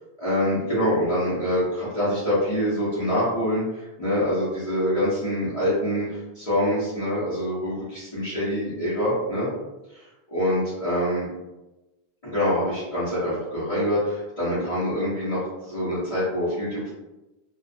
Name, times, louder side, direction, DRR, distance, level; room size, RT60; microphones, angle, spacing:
voice 1, 0.2-3.6 4.0-6.1 6.4-9.5 10.3-11.3 12.3-14.0 14.4-15.4 15.7-16.9, equal, 40° left, -11 dB, 0.8 m, -25 dB
2.4 x 2.3 x 2.5 m, 1.0 s
omnidirectional pair, 1.1 m